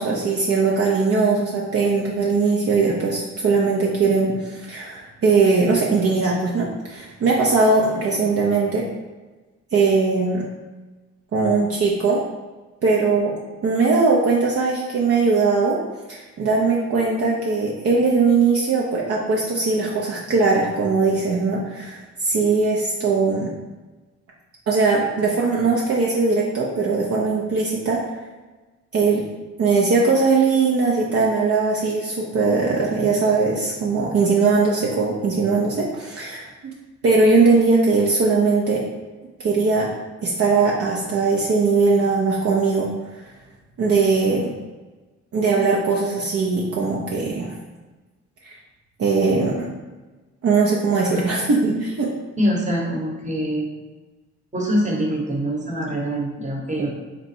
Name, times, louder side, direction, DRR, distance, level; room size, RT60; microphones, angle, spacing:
voice 1, 0.0-8.8 9.7-10.4 11.3-12.2 12.8-13.3 13.6-15.8 16.1-23.5 24.7-28.0 28.9-29.2 29.6-36.7 37.0-38.8 39.4-39.9 40.2-42.9 43.8-44.5 45.3-47.6 48.4-48.6 49.0-49.7 50.4-52.1, right 4 dB, 50° right, -3 dB, 0.7 m, -20 dB
voice 2, 51.0-51.3 52.4-53.7 54.5-56.9, equal, 25° right, -1 dB, 1.1 m, -24 dB
4.0 x 2.2 x 4.3 m, 1.2 s
cardioid pair, 90°, 30 cm